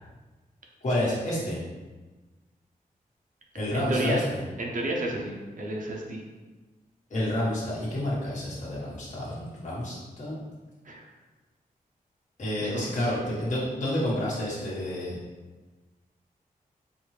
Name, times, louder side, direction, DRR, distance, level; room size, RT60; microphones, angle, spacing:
voice 1, 0.8-1.6 3.5-4.4 7.1-10.4 12.4-15.2, left 1 dB, 55° left, -8 dB, 1.4 m, -29 dB
voice 2, 3.7-4.2 4.6-6.2 10.9-11.1 12.6-12.8, right 1 dB, 60° right, 0 dB, 0.6 m, -31 dB
5.1 x 2.3 x 3.2 m, 1.2 s
wide cardioid pair, 165°, 15 cm